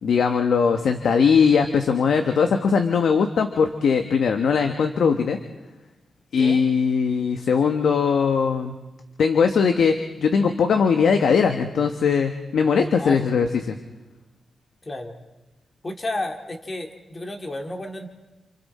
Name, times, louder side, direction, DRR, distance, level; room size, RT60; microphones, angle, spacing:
voice 1, 0.0-5.4 6.3-8.7 9.2-13.8, left 6 dB, 85° left, 6 dB, 1.2 m, -20 dB
voice 2, 13.0-13.3 14.8-15.1 15.8-18.1, left 1 dB, 30° left, 4 dB, 2.3 m, -32 dB
28.5 x 28.0 x 4.3 m, 1.1 s
wide cardioid pair, 115°, 0 cm